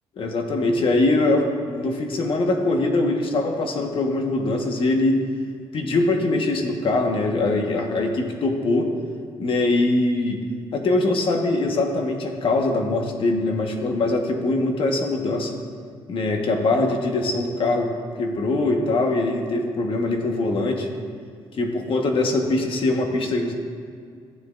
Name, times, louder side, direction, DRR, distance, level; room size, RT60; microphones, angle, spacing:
voice 1, 0.2-5.2 5.7-8.9 9.4-10.4 10.7-15.5 16.1-17.9 18.2-20.9 21.5-23.5, left 2 dB, 60° left, 3 dB, 1.3 m, -22 dB
15.0 x 9.8 x 2.5 m, 2.2 s
cardioid pair, 105°, 10 cm